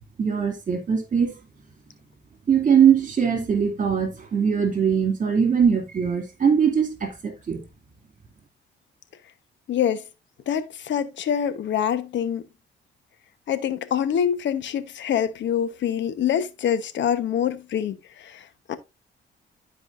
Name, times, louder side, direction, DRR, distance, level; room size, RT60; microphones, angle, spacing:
voice 1, 0.2-1.4 2.5-7.6, right 7 dB, 40° right, 2.5 m, -21 dB
voice 2, 9.7-10.0 10.5-12.4 13.5-18.8, left 9 dB, 65° left, 1.0 m, -25 dB
12.5 x 4.8 x 2.5 m
cardioid pair, 90°, 20 cm